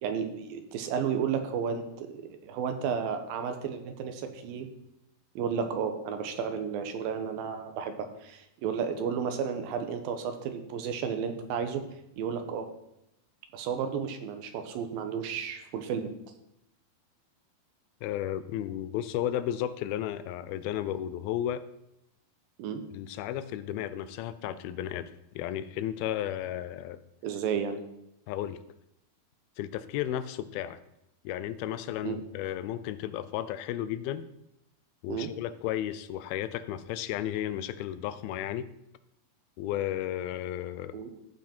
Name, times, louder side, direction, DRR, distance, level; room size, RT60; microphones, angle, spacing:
voice 1, 0.0-4.7 5.4-11.8 12.2-12.7 13.5-16.1 22.6-22.8 27.2-27.8 32.0-32.2 35.1-35.3 40.9-41.1, right 7 dB, 80° right, 7 dB, 2.7 m, -32 dB
voice 2, 18.0-21.6 22.9-27.0 28.3-28.6 29.6-30.8 31.2-34.3 35.0-38.7 39.6-41.0, left 11 dB, 90° left, 14 dB, 2.5 m, -33 dB
15.0 x 5.8 x 4.4 m, 0.83 s
omnidirectional pair, 4.2 m